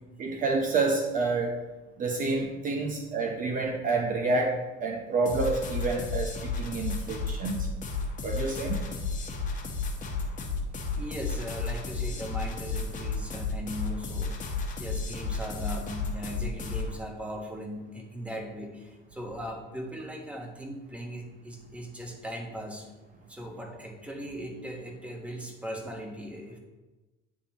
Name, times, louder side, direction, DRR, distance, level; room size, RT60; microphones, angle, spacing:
voice 1, 0.2-1.6 2.0-7.7 8.2-8.8, right 3 dB, 40° right, 2 dB, 0.8 m, -28 dB
sound 1, 5.3-17.0, left 4 dB, 35° left, 1.2 m, -33 dB
voice 2, 10.9-22.9 23.3-26.6, equal, 5° right, 1 dB, 1.2 m, -39 dB
10.0 x 3.6 x 3.0 m, 1.1 s
supercardioid pair, 100°, 21 cm